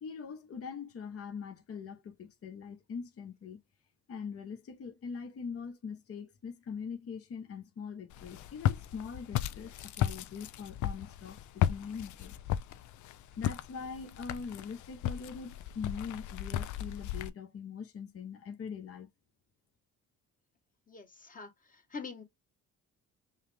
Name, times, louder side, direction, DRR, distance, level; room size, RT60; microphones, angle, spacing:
voice 1, 0.0-3.6 4.1-12.4 13.4-19.1, left 6 dB, 50° left, 1.0 m, -42 dB
Walk footsteps, 8.1-17.3, left 11 dB, 75° left, 0.5 m, -35 dB
voice 2, 20.9-22.2, left 4 dB, 25° left, 1.1 m, -45 dB
5.6 x 2.0 x 3.2 m
cardioid pair, 90°, 30 cm